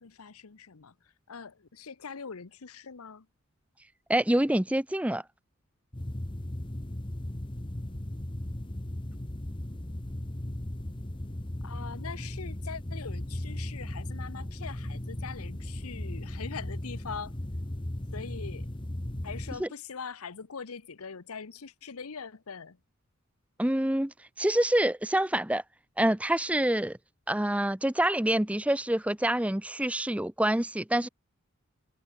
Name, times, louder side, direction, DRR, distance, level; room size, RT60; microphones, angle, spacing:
voice 1, 0.0-0.9 1.3-3.2 11.6-17.3 18.1-18.7 19.2-22.8, left 5 dB, 90° left, 0.9 m, -42 dB
voice 2, 4.1-5.2 19.6-19.7 23.6-25.6 26.0-27.0 27.3-31.1, right 1 dB, 5° right, 0.6 m, -26 dB
sound 1, 5.9-19.6, left 1 dB, 20° left, 1.0 m, -37 dB
head